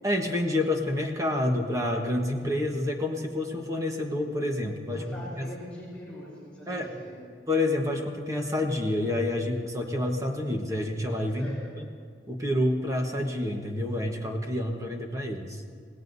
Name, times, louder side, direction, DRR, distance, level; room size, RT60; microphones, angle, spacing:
voice 1, 0.0-5.0 5.4-5.5 6.7-6.9 7.5-11.9 12.3-15.6, left 1 dB, 20° right, 2 dB, 1.2 m, -28 dB
voice 2, 4.9-7.4 11.3-11.8, equal, 5° left, -8 dB, 4.3 m, -43 dB
27.0 x 18.0 x 2.7 m, 2.1 s
head